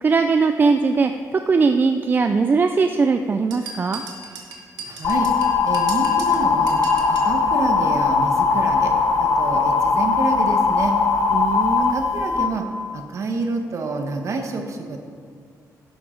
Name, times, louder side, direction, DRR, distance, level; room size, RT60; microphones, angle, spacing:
voice 1, 0.0-4.0 11.3-12.0, right 4 dB, 30° right, 7 dB, 0.4 m, -20 dB
sound 1, 3.5-7.4, right 4 dB, 85° right, 1.7 m, -36 dB
voice 2, 4.9-5.3 5.6-6.8 7.1-8.9 9.2-10.9 11.8-12.6 12.9-15.0, right 3 dB, 50° right, 4 dB, 1.3 m, -28 dB
sound 2, 5.0-12.4, left 4 dB, 50° left, 1.1 m, -20 dB
11.5 x 11.5 x 3.9 m, 2.1 s
cardioid pair, 130°, 7 cm